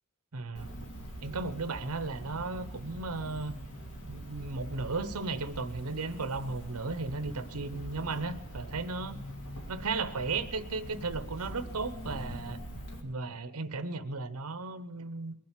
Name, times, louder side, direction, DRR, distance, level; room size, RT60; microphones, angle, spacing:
voice 1, 0.3-0.7 1.2-3.5 4.1-9.2 9.7-12.6 13.0-15.3, right 3 dB, 75° right, 13 dB, 0.9 m, -35 dB
Cricket, 0.6-13.0, right 1 dB, 90° left, 2.4 m, -43 dB
21.5 x 7.6 x 7.4 m, 1.0 s
head